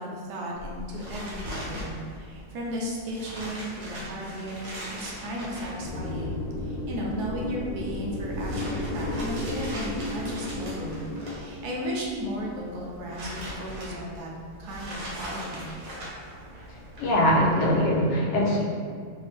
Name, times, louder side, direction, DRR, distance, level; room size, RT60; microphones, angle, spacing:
voice 1, 0.0-14.3 14.6-15.7, equal, 70° right, -3 dB, 1.1 m, -35 dB
sound 1, 0.5-17.8, equal, 50° right, 0.8 m, -41 dB
sound 2, 5.8-12.4, left 1 dB, 70° left, 0.9 m, -33 dB
voice 2, 17.0-18.6, equal, 85° left, -3 dB, 1.3 m, -22 dB
3.4 x 2.0 x 3.2 m, 2.1 s
omnidirectional pair, 1.8 m